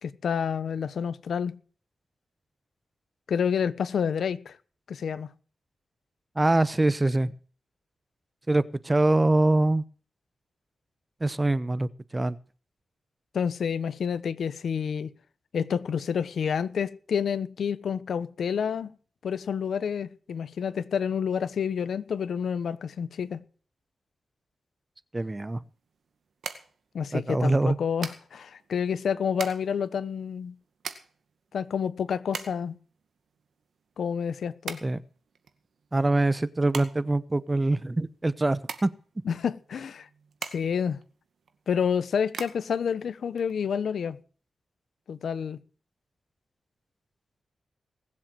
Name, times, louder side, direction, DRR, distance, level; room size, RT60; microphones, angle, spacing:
voice 1, 0.0-1.5 3.3-4.6 4.9-5.3 13.3-15.1 15.5-18.9 19.2-23.4 26.9-30.5 31.5-32.7 34.0-34.8 39.2-40.1 40.5-41.0 41.7-44.2 45.1-45.6, left 7 dB, 80° left, 1.1 m, -29 dB
voice 2, 6.4-7.3 8.5-9.8 11.2-12.4 25.1-25.6 27.1-27.8 34.8-35.0 35.9-38.9, right 2 dB, 20° right, 0.9 m, -24 dB
sound 1, 25.2-44.0, right 6 dB, 80° right, 2.0 m, -43 dB
20.0 x 7.7 x 7.7 m
cardioid pair, 85°, 0 cm